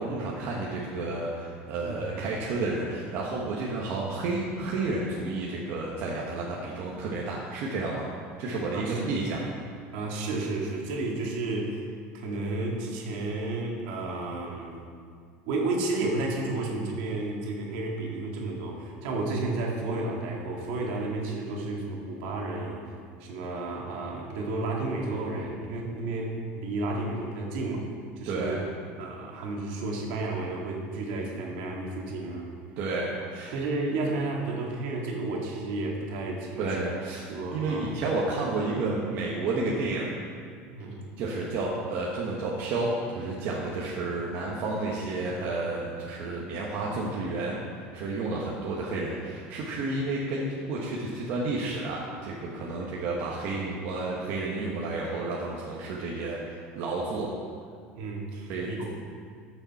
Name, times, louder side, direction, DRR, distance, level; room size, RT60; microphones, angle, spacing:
voice 1, 0.0-8.1 8.4-9.4 28.3-28.6 32.8-33.5 36.6-37.3 37.5-40.1 41.2-57.3 58.5-58.8, right 3 dB, 50° right, -4 dB, 1.4 m, -31 dB
voice 2, 1.9-2.3 8.7-9.0 9.9-11.8 12.1-14.7 15.5-22.8 23.2-27.9 28.2-28.5 29.0-32.5 33.5-36.8 37.3-37.9 40.7-41.0 58.0-58.8, right 2 dB, 70° right, -1 dB, 2.1 m, -32 dB
14.0 x 7.0 x 4.3 m, 2.2 s
cardioid pair, 150°, 5 cm